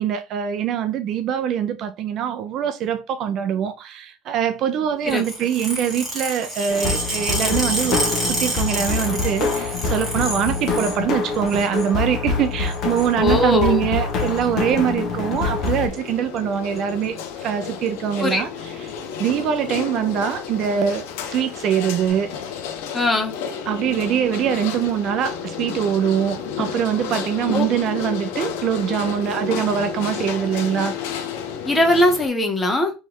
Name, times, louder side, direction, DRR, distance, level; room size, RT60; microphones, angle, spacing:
voice 1, 0.0-18.9 19.2-22.4 23.7-30.9, right 9 dB, 45° right, 0.4 m, -23 dB
sound 1, 5.1-11.0 11.3-11.9 12.6-13.1 14.2-14.4 15.4-15.7 16.0-16.1 16.4-16.5 16.8-17.2 17.9-18.0 18.9-19.0, right 1 dB, 10° right, 1.7 m, -28 dB
sound 2, 6.7-15.9, left 4 dB, 45° left, 0.9 m, -25 dB
voice 2, 13.2-13.8 18.2-18.5 22.9-23.3 27.5-27.7 31.6-32.9, left 1 dB, 15° left, 0.9 m, -19 dB
sound 3, 15.5-32.3, left 7 dB, 80° left, 0.7 m, -31 dB
3.2 x 3.1 x 3.6 m
cardioid pair, 155°, 0 cm